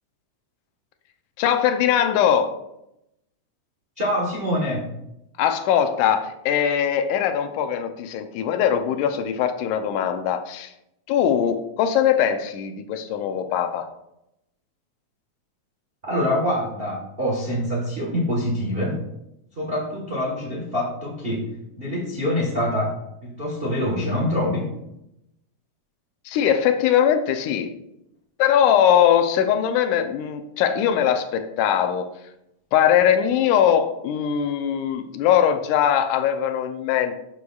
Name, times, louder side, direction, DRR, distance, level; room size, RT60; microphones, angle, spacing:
voice 1, 1.4-2.5 5.4-10.7 11.1-13.9 26.3-27.7 28.4-32.1 32.7-37.1, left 9 dB, 85° left, 7 dB, 2.2 m, -21 dB
voice 2, 4.0-4.9 16.0-19.0 19.6-21.5 21.8-24.7, left 1 dB, 55° right, -3 dB, 0.6 m, -25 dB
11.0 x 6.4 x 2.3 m, 0.85 s
omnidirectional pair, 3.5 m